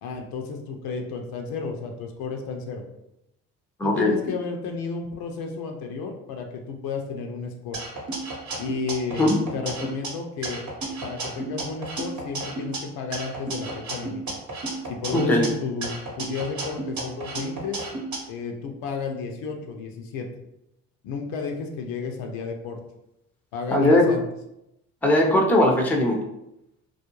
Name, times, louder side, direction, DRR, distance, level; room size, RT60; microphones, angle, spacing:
voice 1, 0.0-2.8 3.8-7.8 8.6-10.6 11.0-14.2 14.9-17.9 18.3-20.3 21.0-22.8 23.5-24.2, left 4 dB, 60° left, 3 dB, 0.6 m, -32 dB
voice 2, 3.8-4.1 9.2-9.4 15.1-15.4 23.7-24.1 25.0-26.2, left 1 dB, 5° left, 0 dB, 0.5 m, -19 dB
sound 1, 7.7-10.1 10.4-12.8 13.1-15.5 15.8-18.2, right 2 dB, 45° right, 0.9 m, -32 dB
2.4 x 2.1 x 2.9 m, 0.86 s
hypercardioid pair, 55°, 41 cm